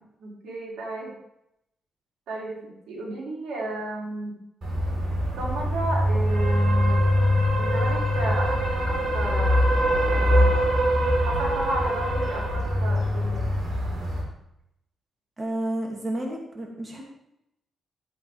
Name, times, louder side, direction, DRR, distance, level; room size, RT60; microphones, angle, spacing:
voice 1, 0.2-1.1 2.3-4.4 5.4-7.1 7.6-9.8 10.0-10.5 11.2-13.5, right 2 dB, 90° right, -4 dB, 3.8 m, -33 dB
sound 1, 4.6-14.2, equal, 60° right, 4.5 m, -23 dB
voice 2, 15.4-17.0, right 1 dB, 30° right, -1 dB, 2.7 m, -31 dB
13.5 x 8.7 x 3.6 m, 0.82 s
cardioid pair, 80°, 0 cm